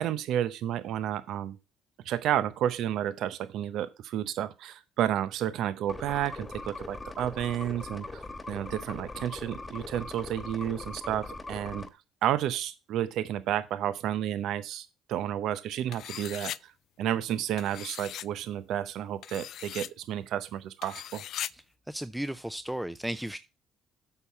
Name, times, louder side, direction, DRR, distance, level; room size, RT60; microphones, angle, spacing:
voice 1, 0.0-1.6 2.0-8.2 8.5-11.9 12.2-16.7 17.0-21.2, right 11 dB, 70° right, 0.7 m, -31 dB
sound 1, 5.9-11.9, left 2 dB, 20° left, 1.3 m, -41 dB
sound 2, 15.9-16.6 17.6-18.3 19.2-19.9 20.8-21.5, left 11 dB, 65° left, 0.3 m, -39 dB
voice 2, 21.9-23.4, right 1 dB, 5° right, 0.5 m, -34 dB
8.1 x 5.7 x 5.6 m
supercardioid pair, 70°, 0 cm